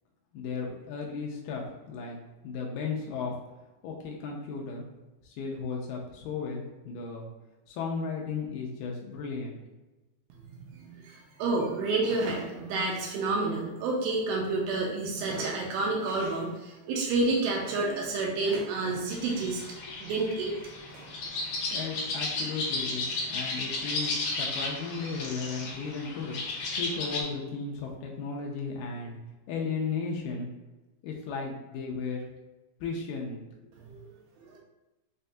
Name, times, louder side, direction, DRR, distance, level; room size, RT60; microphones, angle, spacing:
voice 1, 0.3-3.3 3.8-4.9 5.2-7.3 7.7-9.6 21.7-23.0 23.3-26.4 26.8-29.2 29.5-30.5 31.0-32.3 32.8-33.4, left 5 dB, 85° left, -1 dB, 2.0 m, -35 dB
voice 2, 10.7-19.6 20.0-20.5 20.9-21.1 33.8-34.0 34.4-34.6, right 3 dB, 80° right, -2 dB, 2.3 m, -29 dB
sound 1, 19.1-27.2, left 3 dB, 70° left, 1.8 m, -34 dB
6.3 x 2.2 x 2.6 m, 1.1 s
omnidirectional pair, 4.4 m